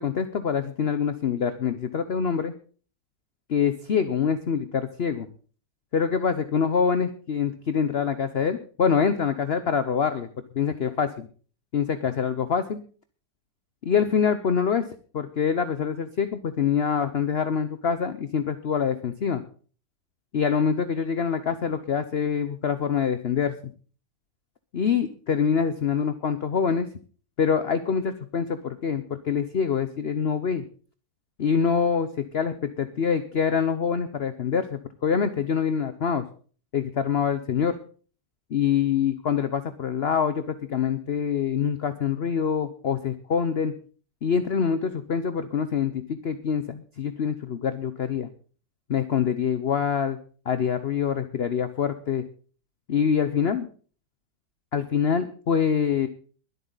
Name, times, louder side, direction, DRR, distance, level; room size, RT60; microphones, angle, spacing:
voice 1, 0.0-2.5 3.5-5.3 5.9-10.3 10.5-11.3 11.7-12.8 13.8-14.9 15.1-19.4 20.3-23.6 24.7-26.9 27.4-30.6 31.4-36.2 36.7-37.8 38.5-43.7 44.2-48.3 48.9-50.2 50.5-52.2 52.9-53.7 54.7-56.1, left 7 dB, 50° left, 11 dB, 0.8 m, -25 dB
22.0 x 8.2 x 4.0 m, 0.40 s
omnidirectional pair, 2.0 m